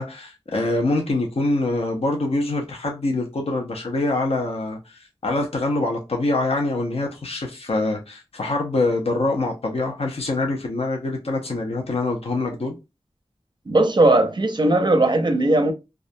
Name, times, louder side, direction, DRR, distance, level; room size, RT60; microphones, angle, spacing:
voice 1, 0.0-12.7, left 2 dB, 70° left, 0.6 m, -24 dB
voice 2, 13.7-15.7, right 2 dB, 45° right, 0.5 m, -18 dB
2.3 x 2.1 x 2.6 m
wide cardioid pair, 60°, 11 cm